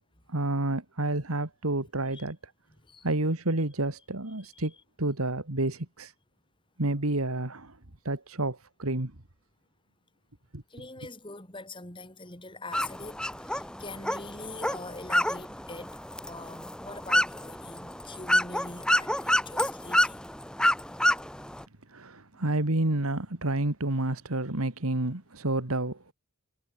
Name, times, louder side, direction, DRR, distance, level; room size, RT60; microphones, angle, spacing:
voice 1, 0.3-2.4 3.0-4.7 5.0-6.1 6.8-7.8 8.0-9.1 10.5-10.6 21.9-26.1, right 2 dB, 90° right, 2.4 m, -29 dB
voice 2, 10.7-16.0 16.3-20.2 21.1-21.3, left 2 dB, 25° left, 3.9 m, -43 dB
sound 1, 12.7-21.6, left 1 dB, 5° left, 1.6 m, -29 dB
head